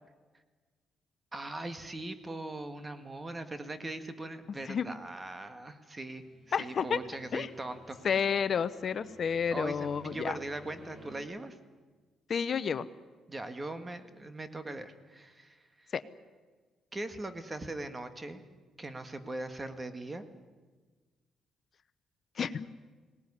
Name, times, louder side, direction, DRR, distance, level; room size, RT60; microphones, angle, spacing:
voice 1, 1.3-8.0 9.5-11.6 13.3-15.6 16.9-18.4 18.8-20.2, right 2 dB, 20° right, 9 dB, 1.8 m, -40 dB
sound 1, 6.1-11.2, equal, 45° right, 5.9 m, -55 dB
voice 2, 6.5-7.0 7.3-7.5 8.0-10.4 12.3-12.9 15.9-16.0 22.4-22.7, left 7 dB, 50° left, 14 dB, 0.8 m, -30 dB
20.0 x 18.0 x 9.9 m, 1.4 s
cardioid pair, 90°, 0 cm